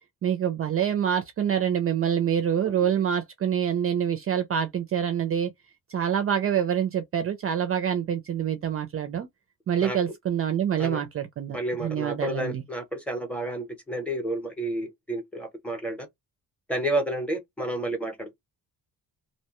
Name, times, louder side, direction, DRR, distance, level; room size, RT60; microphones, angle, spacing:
voice 1, 0.2-5.5 5.9-9.3 9.7-12.6, right 9 dB, 40° right, 0.4 m, -26 dB
voice 2, 11.5-16.1 16.7-18.3, right 1 dB, 5° left, 0.7 m, -30 dB
2.7 x 2.1 x 2.8 m
wide cardioid pair, 175°, 37 cm